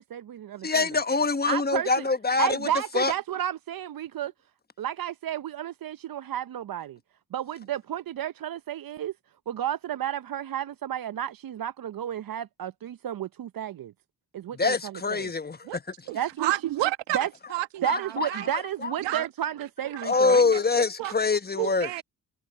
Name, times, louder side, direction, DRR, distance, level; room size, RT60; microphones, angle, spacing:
voice 1, 0.0-0.9 1.5-2.1 2.4-4.3 4.8-7.0 7.3-9.1 9.5-13.9 14.3-15.3 16.1-16.7 17.1-17.3 17.8-20.4, right 11 dB, 55° right, 0.8 m, -32 dB
voice 2, 0.6-2.6 2.9-3.1 14.5-15.8 17.8-18.3 18.8-18.9 20.0-21.9, left 4 dB, 25° left, 1.2 m, -24 dB
voice 3, 16.1-17.2 17.5-18.5 19.0-19.3 19.9-20.0 20.3-21.1 21.5-22.0, right 16 dB, 80° right, 1.3 m, -31 dB
hypercardioid pair, 40°, 42 cm